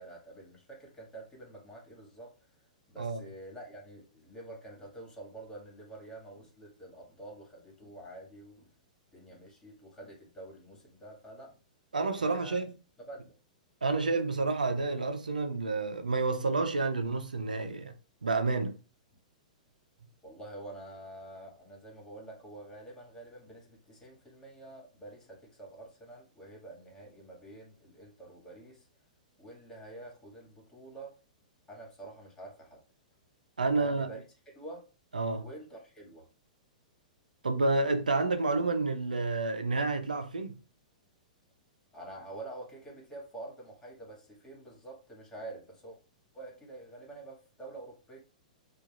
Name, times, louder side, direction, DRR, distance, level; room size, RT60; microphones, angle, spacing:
voice 1, 0.0-2.3 2.9-8.7 9.1-11.6 12.2-12.6 13.0-13.4 20.2-28.9 29.4-31.2 31.7-32.8 33.7-34.2 34.5-34.9 35.4-36.3 41.9-46.0 46.3-48.2, right 2 dB, 15° left, 2.1 m, -47 dB
voice 2, 11.9-12.7 13.8-17.9 18.2-18.7 33.6-34.1 35.1-35.4 37.4-40.6, right 3 dB, 90° right, 0.6 m, -29 dB
7.2 x 2.6 x 2.5 m
hypercardioid pair, 110°, 4 cm